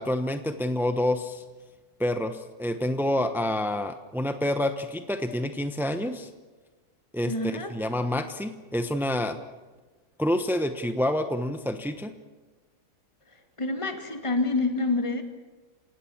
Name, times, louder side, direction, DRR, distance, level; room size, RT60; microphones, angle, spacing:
voice 1, 0.0-1.4 2.0-6.3 7.1-9.4 10.2-12.1, left 1 dB, 5° right, 8 dB, 0.3 m, -28 dB
voice 2, 7.3-7.7 13.3-15.2, left 3 dB, 15° left, 5 dB, 2.2 m, -27 dB
28.5 x 17.0 x 7.3 m, 1.3 s
omnidirectional pair, 2.2 m